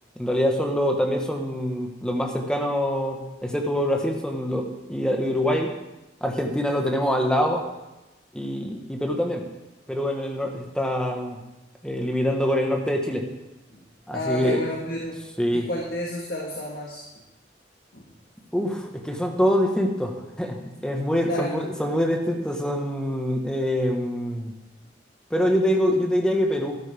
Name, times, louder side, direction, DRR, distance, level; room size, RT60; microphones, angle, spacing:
voice 1, 0.2-5.7 6.2-7.6 8.3-9.4 9.9-11.4 11.8-13.2 14.1-14.6 15.4-15.7 18.5-24.5 25.3-26.8, equal, 5° left, 2 dB, 1.4 m, -25 dB
voice 2, 14.1-15.2 15.5-17.0 17.9-18.1 21.3-21.5, equal, 55° left, -2 dB, 1.6 m, -30 dB
13.0 x 11.5 x 3.6 m, 1.0 s
head